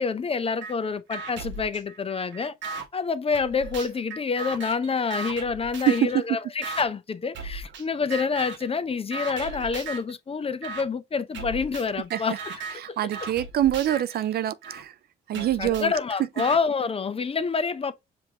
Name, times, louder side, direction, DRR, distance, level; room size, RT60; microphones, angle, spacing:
voice 1, 0.0-2.5 2.9-12.4 12.7-13.0 15.3-17.9, left 5 dB, 30° left, 0.5 m, -27 dB
sound 1, 0.6-0.7 1.1-2.9 3.3-6.2 6.6-6.9 7.3-7.8 8.1-8.7 9.1-10.1 10.6-10.8 11.3-14.8 15.3-16.6, right 4 dB, 70° right, 1.0 m, -37 dB
voice 2, 12.8-14.9 15.3-15.9, right 12 dB, 55° right, 0.4 m, -25 dB
5.2 x 2.6 x 2.8 m
supercardioid pair, 55°, 20 cm